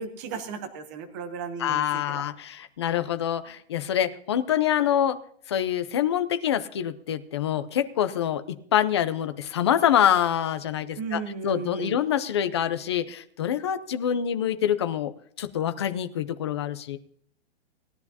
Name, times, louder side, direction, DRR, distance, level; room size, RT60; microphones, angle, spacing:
voice 1, 0.0-2.2 10.9-12.0, right 5 dB, 20° right, 7 dB, 0.8 m, -35 dB
voice 2, 1.6-5.2 5.5-15.1 15.4-17.0, left 10 dB, 25° left, 10 dB, 0.5 m, -26 dB
18.5 x 10.5 x 2.8 m, 0.62 s
hypercardioid pair, 180°, 32 cm